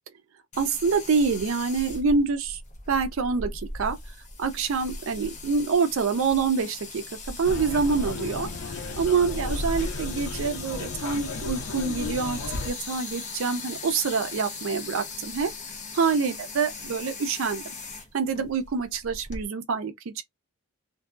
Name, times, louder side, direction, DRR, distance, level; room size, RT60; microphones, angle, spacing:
sound 1, 0.5-19.4, left 3 dB, 30° left, 0.6 m, -39 dB
voice 1, 0.6-2.6 2.9-4.0 4.4-15.5 15.9-17.7 18.1-20.2, right 5 dB, 65° right, 0.4 m, -26 dB
sound 2, 7.4-12.7, left 2 dB, 80° left, 0.5 m, -33 dB
2.6 x 2.2 x 2.4 m
head